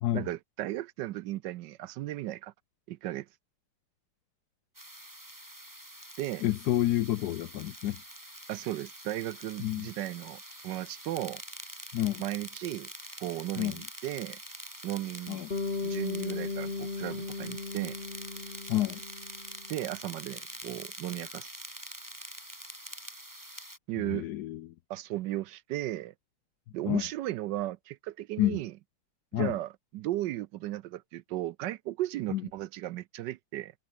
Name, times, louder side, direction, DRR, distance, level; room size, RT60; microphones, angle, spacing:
voice 1, 0.1-2.5 2.9-3.3 6.2-6.4 8.5-11.4 12.2-12.9 13.2-14.4 14.8-15.4 15.8-18.0 19.7-21.5 23.9-24.3 24.9-26.1 26.7-28.7 29.3-33.7, right 15 dB, 75° right, 1.0 m, -35 dB
electric crackle buzz high tension powerline hydro dam, 4.7-23.8, right 1 dB, 10° right, 4.1 m, -45 dB
voice 2, 6.4-8.0 9.6-9.9 11.9-12.2 13.6-13.8 15.3-15.5 18.7-19.0 24.0-24.6 26.9-27.0 28.4-28.6 29.3-29.5 32.3-32.4, left 14 dB, 80° left, 0.9 m, -29 dB
Bass guitar, 15.5-19.8, left 3 dB, 30° left, 2.3 m, -36 dB
omnidirectional pair, 2.3 m